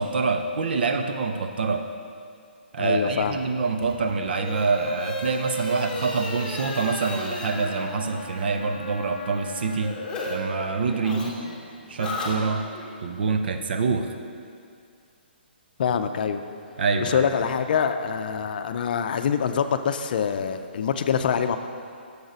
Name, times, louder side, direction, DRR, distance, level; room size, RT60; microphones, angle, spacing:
voice 1, 0.0-1.9 2.7-10.0 10.3-11.3 11.9-12.7 13.0-14.1 16.8-17.3, right 4 dB, 65° right, 6 dB, 0.7 m, -26 dB
voice 2, 2.8-3.4 15.8-16.4 17.0-21.6, left 7 dB, 55° left, 9 dB, 0.5 m, -25 dB
sound 1, 3.7-10.3 10.6-12.9, left 2 dB, 10° left, 1.3 m, -35 dB
7.9 x 7.1 x 5.2 m, 2.3 s
hypercardioid pair, 145°, 6 cm